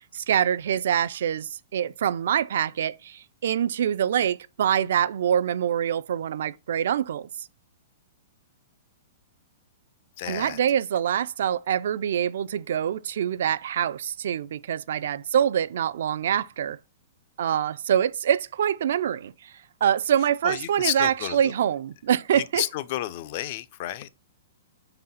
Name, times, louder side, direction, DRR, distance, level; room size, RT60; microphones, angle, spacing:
voice 1, 0.1-7.5 10.3-16.8 17.4-19.5 19.8-22.6, right 9 dB, 65° right, 0.3 m, -25 dB
voice 2, 10.2-10.6 20.4-21.5 22.3-24.1, left 14 dB, 35° left, 0.3 m, -31 dB
4.7 x 3.9 x 5.5 m
hypercardioid pair, 175°, 0 cm